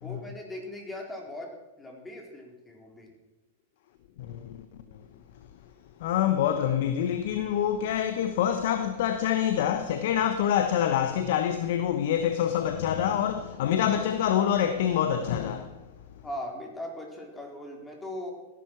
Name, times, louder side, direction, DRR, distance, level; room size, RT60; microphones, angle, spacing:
voice 1, 0.0-1.5 1.8-3.1 16.2-18.3, left 1 dB, 10° left, 3.9 m, -39 dB
voice 2, 4.2-4.6 6.0-15.8, left 9 dB, 60° left, 1.1 m, -26 dB
17.0 x 11.5 x 4.7 m
hypercardioid pair, 105°, 0 cm